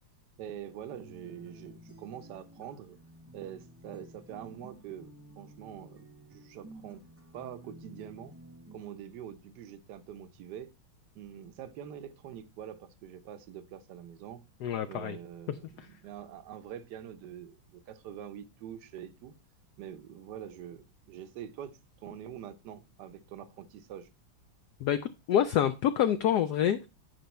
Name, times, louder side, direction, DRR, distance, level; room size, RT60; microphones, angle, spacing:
voice 1, 0.4-3.0 3.3-6.0 6.3-7.0 7.3-8.3 8.7-10.7 11.1-14.4 14.9-19.3 19.8-24.1, right 9 dB, 65° right, 1.2 m, -45 dB
sound 1, 0.9-8.9, right 1 dB, 20° right, 0.4 m, -53 dB
voice 2, 14.6-15.2 15.8-15.9 24.8-25.0 25.3-26.9, left 10 dB, 75° left, 0.9 m, -27 dB
9.3 x 5.3 x 4.2 m
omnidirectional pair, 2.2 m